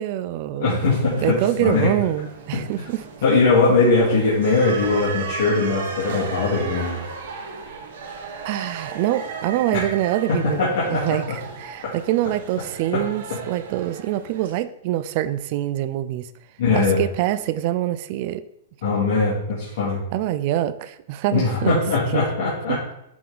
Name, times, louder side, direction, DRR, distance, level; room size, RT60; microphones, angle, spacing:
voice 1, 0.0-0.8 1.2-3.0 8.4-16.3 16.7-18.4 20.1-21.8 22.1-22.2 22.7-22.9, right 13 dB, 45° right, 14 dB, 0.4 m, -25 dB
voice 2, 0.6-1.9 3.2-7.0 9.7-9.8 10.6-11.0 12.9-13.0 16.6-17.0 18.8-20.0 21.3-22.8, left 3 dB, 65° left, -8 dB, 2.1 m, -20 dB
sound 1, 0.7-14.5, right 5 dB, 70° right, 1.1 m, -36 dB
7.5 x 3.6 x 3.9 m, 0.80 s
hypercardioid pair, 145°, 0 cm